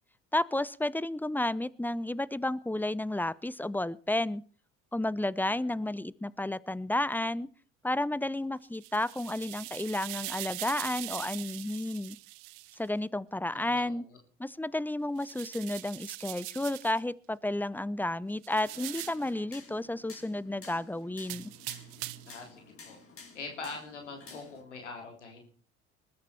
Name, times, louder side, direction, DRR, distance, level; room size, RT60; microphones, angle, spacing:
voice 1, 0.3-4.4 4.9-7.5 7.8-12.2 12.8-14.0 14.4-21.5, left 1 dB, 5° left, 21 dB, 0.8 m, -32 dB
voice 2, 5.4-5.8 13.5-14.2 22.3-23.0 23.3-25.4, left 4 dB, 90° left, 3 dB, 3.5 m, -44 dB
sound 1, 8.7-12.8 15.2-17.0 18.4-19.3 21.2-22.4, right 22 dB, 65° right, 0.9 m, -42 dB
sound 2, 18.5-24.6, left 4 dB, 40° left, 5.7 m, -52 dB
20.5 x 12.5 x 4.4 m, 0.42 s
hypercardioid pair, 55°, 34 cm